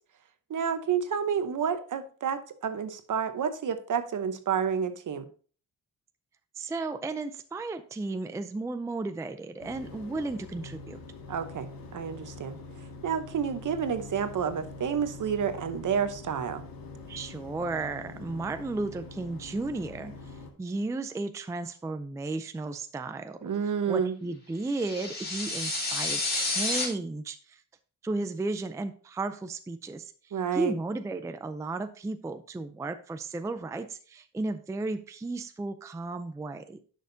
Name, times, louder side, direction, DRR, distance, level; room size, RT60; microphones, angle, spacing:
voice 1, 0.5-5.3 11.3-11.7 11.9-12.6 13.0-16.6 23.4-24.1 30.3-30.7, right 7 dB, 60° right, 10 dB, 0.9 m, -29 dB
voice 2, 6.6-11.0 17.1-23.4 23.9-27.6 28.0-30.1 30.5-36.8, right 3 dB, 10° right, 10 dB, 0.3 m, -34 dB
sound 1, 9.6-20.5, left 3 dB, 85° left, 1.7 m, -44 dB
sound 2, 24.7-26.8, left 2 dB, 25° left, 2.1 m, -30 dB
10.5 x 6.3 x 2.6 m, 0.42 s
wide cardioid pair, 170°, 34 cm